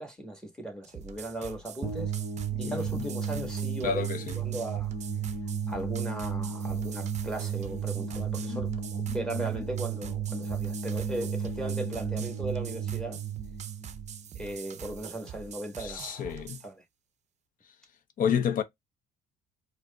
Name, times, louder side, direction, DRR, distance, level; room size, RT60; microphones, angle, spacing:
voice 1, 0.0-2.1 2.6-4.0 4.3-4.9 5.7-13.2 14.3-16.8, right 1 dB, 5° left, 1.3 m, -37 dB
sound 1, 0.8-16.7, right 8 dB, 40° right, 0.5 m, -45 dB
sound 2, 1.8-14.9, right 6 dB, 20° right, 0.9 m, -33 dB
voice 2, 2.5-3.0 3.3-3.5 3.8-4.2 8.5-8.6 9.1-9.4 15.8-16.6 18.2-18.6, left 8 dB, 50° left, 0.6 m, -30 dB
4.6 x 2.1 x 2.2 m
cardioid pair, 90°, 17 cm